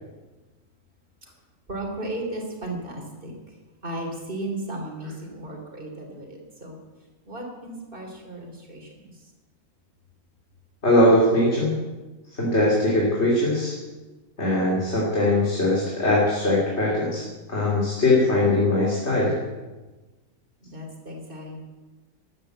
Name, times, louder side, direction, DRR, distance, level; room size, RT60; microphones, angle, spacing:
voice 1, 1.7-3.6 3.8-6.8 7.3-9.3 20.6-21.6, right 1 dB, 35° right, 1 dB, 3.4 m, -35 dB
voice 2, 10.8-11.7 12.3-13.7 14.4-19.4, left 1 dB, 50° left, -4 dB, 3.4 m, -21 dB
13.5 x 11.5 x 8.0 m, 1.2 s
omnidirectional pair, 1.5 m